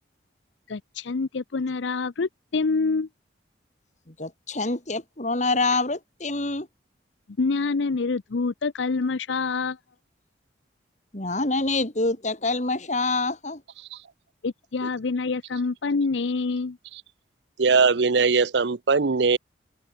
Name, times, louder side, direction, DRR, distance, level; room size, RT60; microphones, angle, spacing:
voice 1, 0.7-3.1 7.4-9.8 14.4-16.8, left 4 dB, 75° left, 0.6 m, -26 dB
voice 2, 4.2-6.7 11.1-13.6, left 3 dB, 40° left, 2.5 m, -26 dB
voice 3, 17.6-19.4, right 4 dB, 65° right, 0.7 m, -20 dB
open air
head